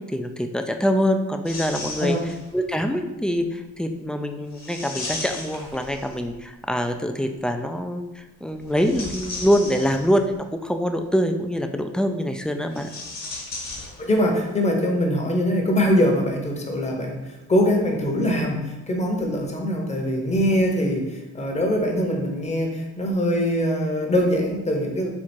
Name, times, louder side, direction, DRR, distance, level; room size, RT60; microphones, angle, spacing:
voice 1, 0.1-2.2 2.5-12.9, equal, 5° left, 5 dB, 0.3 m, -24 dB
sound 1, 1.4-2.6 4.5-6.4 8.6-10.4 12.6-14.4 14.6-14.7 15.7-15.9, left 3 dB, 55° left, 1.3 m, -35 dB
voice 2, 14.0-25.1, equal, 25° left, 1 dB, 0.9 m, -23 dB
4.5 x 2.4 x 4.3 m, 1.1 s
cardioid pair, 90°, 30 cm